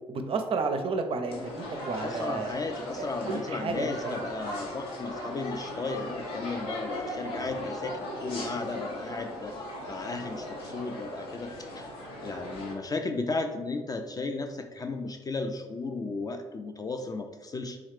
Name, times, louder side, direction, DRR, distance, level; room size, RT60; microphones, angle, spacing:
voice 1, 0.1-2.5 3.0-4.1, right 4 dB, 35° right, 6 dB, 0.5 m, -32 dB
sound 1, 1.3-12.8, left 1 dB, 70° left, 0.8 m, -38 dB
voice 2, 2.0-11.9 12.2-17.8, left 3 dB, 25° left, 6 dB, 0.4 m, -35 dB
3.7 x 3.1 x 3.2 m, 1.3 s
figure-of-eight pair, 45°, 16 cm